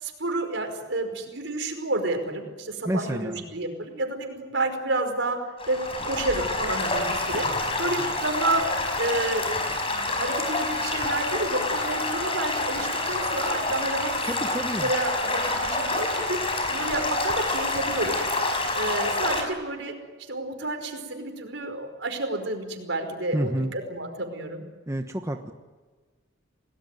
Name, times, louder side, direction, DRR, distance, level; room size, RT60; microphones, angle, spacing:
voice 1, 0.0-14.5 14.8-18.2 18.4-19.9 20.3-24.6, right 2 dB, 70° right, 5 dB, 5.2 m, -30 dB
voice 2, 2.8-3.5 14.2-14.9 23.3-23.7 24.9-25.5, right 1 dB, 15° right, 5 dB, 1.2 m, -29 dB
Stream / Gurgling / Trickle dribble, 5.6-19.4, left 2 dB, 30° left, 5.3 m, -27 dB
28.5 x 19.0 x 9.2 m, 1.4 s
head